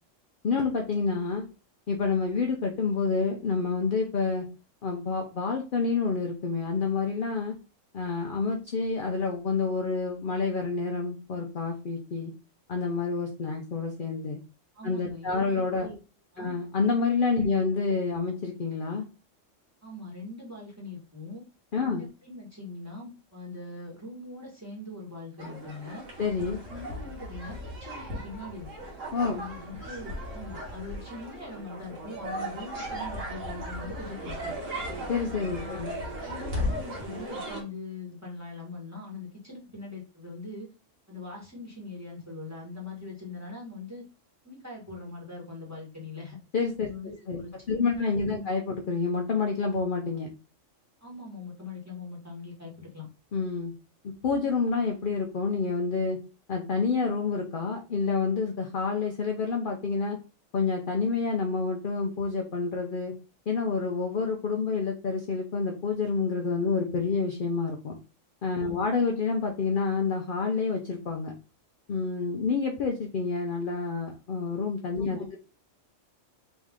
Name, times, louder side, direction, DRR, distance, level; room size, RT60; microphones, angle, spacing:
voice 1, 0.4-1.5 1.9-4.5 4.8-7.6 7.9-12.3 12.7-14.4 14.8-15.9 16.4-19.1 21.7-22.0 26.2-26.6 29.1-29.4 35.1-35.9 46.5-46.9 47.3-47.4 47.7-50.3 53.3-53.7 54.0-56.2 56.5-60.2 60.5-63.1 63.5-67.9 68.4-71.3 71.9-75.4, left 4 dB, 50° left, 2 dB, 0.7 m, -28 dB
voice 2, 14.7-16.0 16.3-16.6 17.4-17.5 19.8-21.4 21.8-26.1 26.7-28.7 29.3-34.6 35.5-35.8 36.2-40.7 41.1-44.0 44.4-46.4 46.8-48.0 48.3-48.4 51.0-53.1 68.6-68.8 75.1-75.4, left 2 dB, 10° right, -3 dB, 1.6 m, -42 dB
sound 1, 25.4-37.6, equal, 75° right, 1.8 m, -37 dB
3.6 x 3.2 x 3.6 m, 0.31 s
omnidirectional pair, 1.3 m